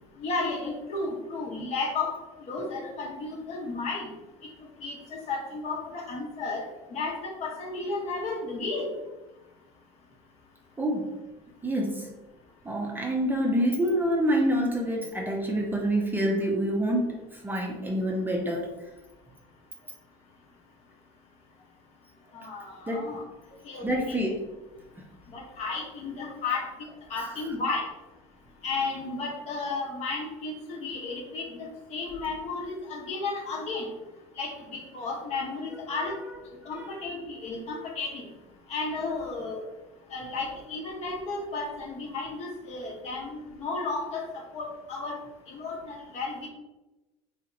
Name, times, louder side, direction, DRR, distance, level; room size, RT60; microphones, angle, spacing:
voice 1, 0.2-2.1 2.4-4.1 4.8-6.6 6.9-8.9 22.3-23.2 23.6-24.2 25.3-26.6 27.1-27.9 28.6-33.9 34.4-36.1 36.7-38.3 38.7-39.6 40.1-45.2 45.5-46.5, left 3 dB, 50° left, 0 dB, 0.9 m, -33 dB
voice 2, 10.8-11.1 11.6-12.1 12.6-18.7 22.9-23.1 23.8-24.4 27.2-27.3 35.7-35.8 36.6-36.8, right 1 dB, 15° right, 0 dB, 0.5 m, -27 dB
3.2 x 2.8 x 2.5 m, 1.0 s
supercardioid pair, 95°, 15 cm